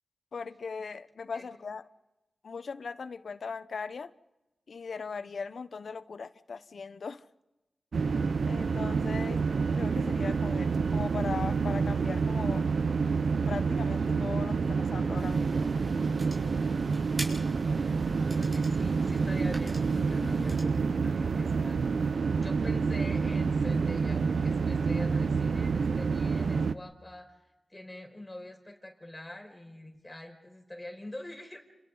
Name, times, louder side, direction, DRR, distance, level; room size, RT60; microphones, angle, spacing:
voice 1, 0.3-1.8 2.4-4.1 4.7-7.2 8.5-9.4 9.7-12.7 13.5-14.6 14.9-15.7 20.2-20.5, left 5 dB, 75° left, 0.9 m, -39 dB
sound 1, 7.9-26.7, right 5 dB, 80° right, 0.7 m, -28 dB
sound 2, 15.2-20.6, right 1 dB, 35° right, 7.3 m, -44 dB
voice 2, 18.4-27.4 27.7-31.6, left 1 dB, 20° left, 5.2 m, -44 dB
30.0 x 28.0 x 4.0 m
cardioid pair, 60°, 0 cm